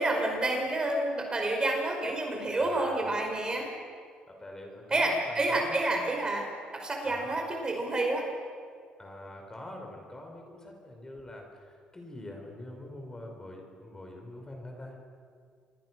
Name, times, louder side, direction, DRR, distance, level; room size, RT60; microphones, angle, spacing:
voice 1, 0.0-3.7 4.9-6.5 6.7-8.3, right 2 dB, 25° right, 2 dB, 5.3 m, -29 dB
voice 2, 2.6-3.1 4.3-6.1 7.0-7.3 9.0-15.0, left 1 dB, 20° left, 2 dB, 5.2 m, -44 dB
27.5 x 22.5 x 6.3 m, 2.1 s
cardioid pair, 95°, 3 cm